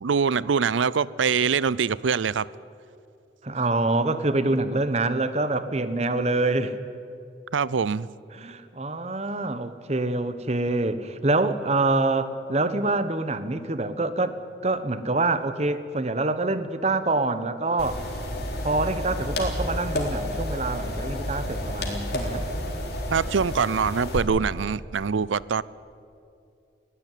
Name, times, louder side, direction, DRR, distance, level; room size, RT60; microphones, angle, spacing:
voice 1, 0.0-2.5 7.5-8.1 23.1-25.6, right 6 dB, 90° right, 21 dB, 0.5 m, -24 dB
voice 2, 3.4-6.8 8.3-14.4 14.6-18.0 18.6-22.5, right 2 dB, 35° right, 12 dB, 1.0 m, -26 dB
sound 1, 17.8-24.2, left 1 dB, 55° left, 3.7 m, -30 dB
20.5 x 16.0 x 9.2 m, 2.5 s
head